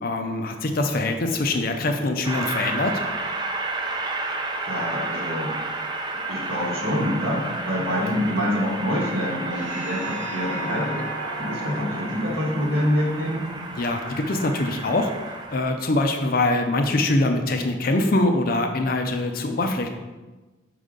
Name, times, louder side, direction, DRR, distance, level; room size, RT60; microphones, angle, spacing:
voice 1, 0.0-3.0 13.8-15.1 15.5-19.9, left 2 dB, 50° left, 5 dB, 0.5 m, -23 dB
Train, 2.3-15.6, right 2 dB, 20° right, 0.4 m, -32 dB
voice 2, 4.6-5.6 6.3-11.0 11.4-13.5, equal, 50° right, -5 dB, 1.8 m, -26 dB
sound 1, 9.5-14.3, right 1 dB, 80° right, 1.0 m, -36 dB
5.3 x 5.0 x 3.8 m, 1.2 s
head